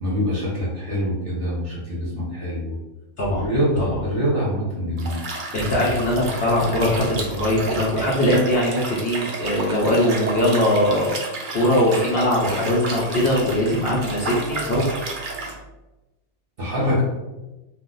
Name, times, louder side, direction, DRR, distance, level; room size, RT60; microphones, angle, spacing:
voice 1, 0.0-2.8 3.3-5.2 16.6-17.0, equal, 50° right, -5 dB, 0.8 m, -24 dB
Liquid, 5.0-15.5, right 3 dB, 70° right, 0.4 m, -32 dB
voice 2, 5.5-11.2 11.5-15.0, left 1 dB, 60° left, -5 dB, 0.7 m, -21 dB
2.4 x 2.1 x 3.7 m, 1.1 s
omnidirectional pair, 1.5 m